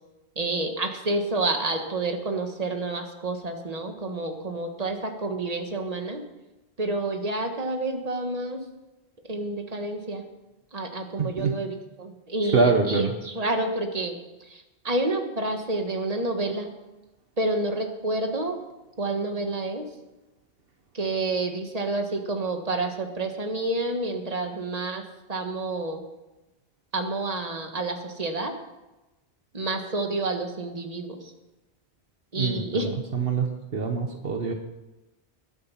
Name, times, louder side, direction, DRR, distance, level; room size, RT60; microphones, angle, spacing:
voice 1, 0.3-6.2 6.8-8.6 9.3-10.2 10.7-16.7 17.4-18.6 19.0-19.8 20.9-26.0 26.9-28.5 29.5-31.3 32.3-32.9, right 2 dB, 40° right, 5 dB, 1.7 m, -29 dB
voice 2, 11.2-11.5 12.5-13.1 32.4-32.5 33.2-33.5 33.7-34.5, right 4 dB, 65° right, 4 dB, 1.3 m, -23 dB
21.0 x 7.9 x 5.8 m, 1.0 s
omnidirectional pair, 1.0 m